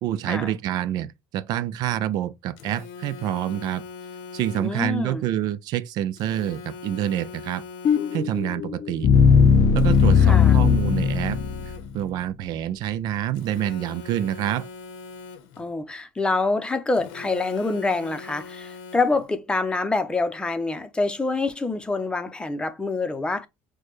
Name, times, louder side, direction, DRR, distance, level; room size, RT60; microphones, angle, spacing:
voice 1, 0.0-3.8 4.3-7.6 8.1-9.1 9.7-11.4 11.9-14.7, right 11 dB, 65° right, 0.5 m, -27 dB
Telephone, 2.6-4.9 6.2-8.5 9.8-12.1 13.3-15.7 16.9-19.3, left 5 dB, 85° left, 0.8 m, -41 dB
voice 2, 4.5-5.2 10.2-10.6 15.6-23.5, left 3 dB, 10° left, 0.7 m, -26 dB
sound 1, 7.9-11.9, left 6 dB, 45° left, 0.4 m, -18 dB
6.4 x 2.3 x 3.1 m
cardioid pair, 115°, 8 cm